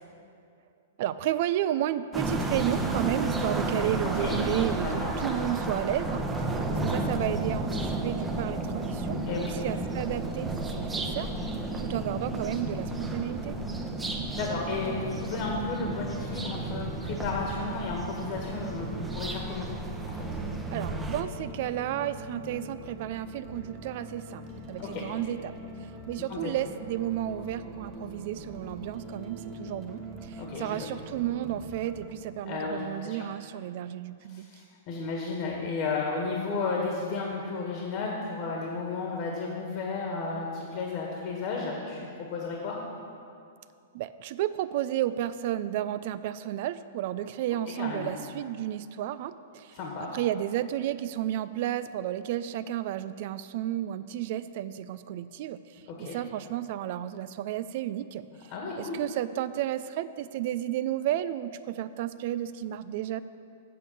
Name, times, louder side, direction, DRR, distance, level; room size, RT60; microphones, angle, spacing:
voice 1, 1.0-11.3 11.8-13.6 20.7-25.5 26.1-34.5 43.9-49.7 50.0-55.6 56.0-58.2 58.8-63.2, right 12 dB, 55° right, 14 dB, 0.4 m, -32 dB
sound 1, 2.1-21.2, right 2 dB, 15° right, 0.9 m, -32 dB
voice 2, 14.3-19.7 20.1-20.3 24.8-25.0 26.2-26.5 30.4-30.9 32.4-33.3 34.3-42.8 47.8-48.2 49.7-50.1 55.9-56.2 58.5-59.0, left 4 dB, 50° left, -1 dB, 1.7 m, -33 dB
sound 2, 18.3-32.1, equal, 35° right, 1.4 m, -43 dB
8.4 x 6.7 x 6.9 m, 2.4 s
hypercardioid pair, 120°, 0 cm